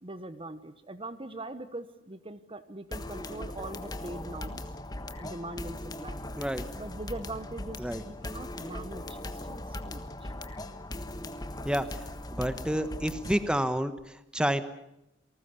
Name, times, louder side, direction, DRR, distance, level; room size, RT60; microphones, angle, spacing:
voice 1, 0.0-4.6 5.2-6.2 6.8-10.3 12.3-12.5, right 2 dB, 30° right, 12 dB, 1.1 m, -42 dB
sound 1, 2.9-13.6, left 1 dB, 20° left, 1.4 m, -39 dB
voice 2, 12.3-13.9 14.3-14.6, equal, 5° right, 11 dB, 1.2 m, -28 dB
28.5 x 19.5 x 7.0 m, 0.87 s
head